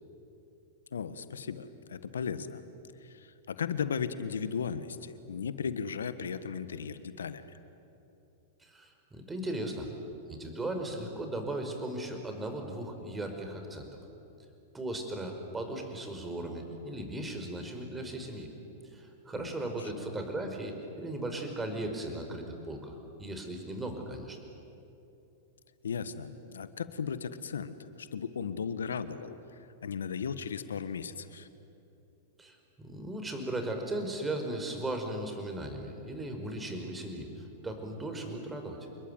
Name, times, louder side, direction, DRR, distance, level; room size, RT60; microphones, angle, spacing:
voice 1, 0.9-2.6 3.0-7.5 19.3-20.1 25.8-31.5, left 6 dB, 80° left, 13 dB, 1.5 m, -36 dB
voice 2, 8.6-9.9 10.3-13.9 14.7-18.5 18.8-24.4 32.4-38.8, right 1 dB, 15° right, 4 dB, 5.0 m, -37 dB
28.0 x 21.5 x 9.2 m, 2.9 s
hypercardioid pair, 110°, 0 cm